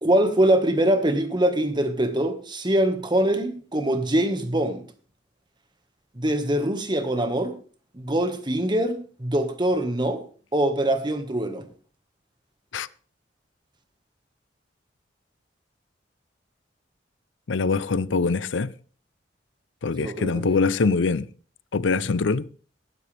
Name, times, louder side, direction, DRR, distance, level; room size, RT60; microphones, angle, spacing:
voice 1, 0.0-4.8 6.1-7.5 7.9-10.2 10.5-11.6 20.0-20.5, right 1 dB, 25° right, 1.6 m, -23 dB
voice 2, 17.5-18.7 19.8-21.3 21.7-22.4, left 4 dB, 85° left, 0.6 m, -23 dB
17.5 x 13.0 x 3.4 m
head